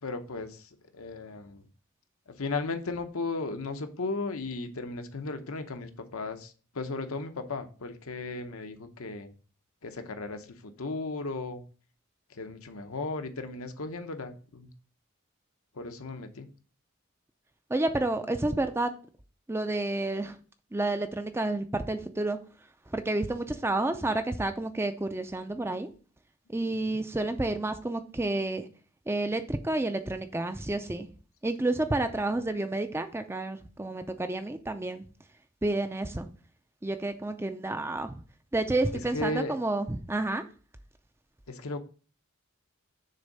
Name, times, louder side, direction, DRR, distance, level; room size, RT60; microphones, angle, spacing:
voice 1, 0.0-1.7 2.3-9.3 9.8-11.6 12.3-14.7 15.7-16.5 26.9-27.0 39.1-39.6 41.5-41.8, left 3 dB, 75° left, 0.8 m, -36 dB
voice 2, 17.7-18.9 19.5-20.4 20.7-22.4 22.9-25.9 26.5-28.7 29.1-31.1 31.4-35.0 35.6-36.3 36.8-38.2 38.5-40.4, right 2 dB, 10° right, 0.4 m, -30 dB
6.6 x 3.6 x 5.4 m
head